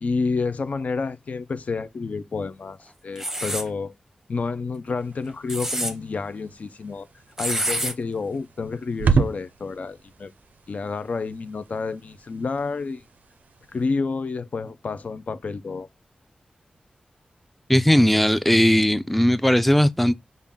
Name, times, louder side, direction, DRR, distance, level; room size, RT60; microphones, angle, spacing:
voice 1, 0.0-3.9 4.3-7.1 7.4-10.3 10.7-13.0 13.7-15.9, left 4 dB, 60° left, 0.5 m, -29 dB
sound 1, 3.2-3.7 5.3-5.9 7.4-7.9, right 1 dB, 10° right, 0.7 m, -27 dB
sound 2, 5.0-13.9, right 5 dB, 90° right, 0.4 m, -32 dB
voice 2, 17.7-20.1, equal, 5° left, 0.4 m, -18 dB
5.4 x 2.5 x 3.6 m
wide cardioid pair, 95°, 3 cm